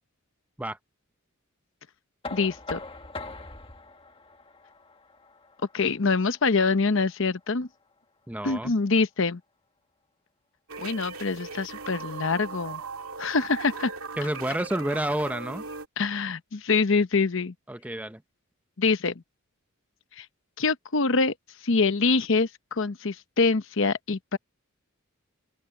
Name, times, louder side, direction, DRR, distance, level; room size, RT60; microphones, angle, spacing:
Knock, 2.2-8.0, left 3 dB, 25° left, 1.6 m, -43 dB
voice 1, 2.3-2.8 5.7-7.7 8.4-9.4 10.8-12.8 13.2-13.9 16.0-17.5 18.8-19.2 20.2-20.3 20.6-21.3 21.6-24.4, left 4 dB, 60° left, 0.9 m, -25 dB
voice 2, 8.3-8.7 14.2-15.6 17.7-18.2, right 1 dB, 5° right, 0.6 m, -29 dB
sound 1, 10.7-15.9, right 4 dB, 85° right, 2.3 m, -38 dB
open air
head